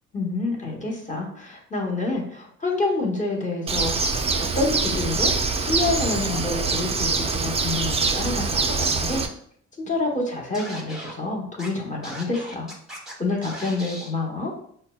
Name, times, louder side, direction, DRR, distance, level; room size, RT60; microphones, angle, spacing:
voice 1, 0.1-4.2 4.5-5.3 5.6-9.2 9.8-12.7 13.2-14.5, left 2 dB, 25° left, 0 dB, 1.1 m, -27 dB
Bird, 3.7-9.3, right 4 dB, 20° right, 0.4 m, -24 dB
Scratching (performance technique), 10.5-11.1 11.6-11.7 12.0-13.1 13.4-14.1, equal, ahead, 1.0 m, -38 dB
5.6 x 2.1 x 2.3 m, 0.64 s
cardioid pair, 90°, 30 cm